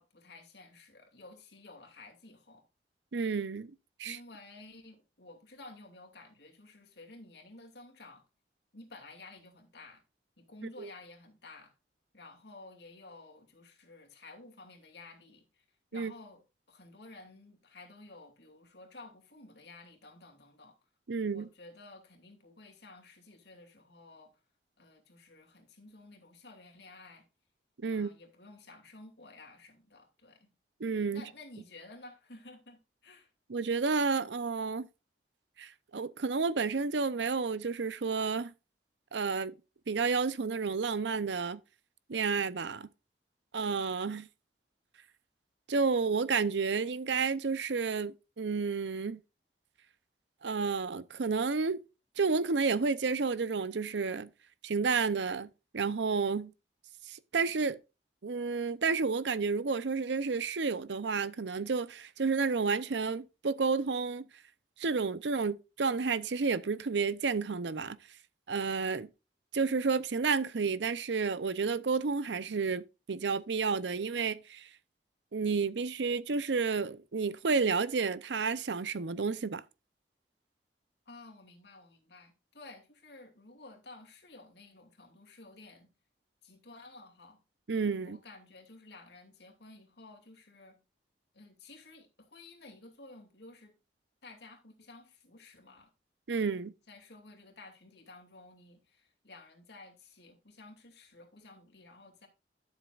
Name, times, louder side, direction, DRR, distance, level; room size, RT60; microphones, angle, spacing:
voice 1, 0.0-2.6 4.0-8.2 8.7-10.0 10.4-11.7 12.1-15.6 15.9-20.8 21.3-24.4 24.8-27.2 27.9-30.5 31.1-33.3 81.1-85.9 86.4-87.4 88.0-90.8 91.3-93.7 94.2-95.9 96.9-102.3, left 2 dB, 70° left, 2.6 m, -53 dB
voice 2, 3.1-3.7 4.0-4.2 10.8-10.9 15.9-16.1 21.1-21.5 27.8-28.1 30.8-31.2 33.5-34.9 35.6-38.5 39.1-39.6 39.9-41.6 42.1-42.9 43.5-44.3 45.7-49.2 50.4-51.8 52.2-54.3 54.6-56.5 57.1-57.8 58.2-64.2 64.8-68.0 68.5-69.1 69.5-74.7 75.3-79.6 87.7-88.2 96.3-96.7, right 4 dB, 85° right, 0.7 m, -31 dB
12.0 x 7.3 x 2.4 m
head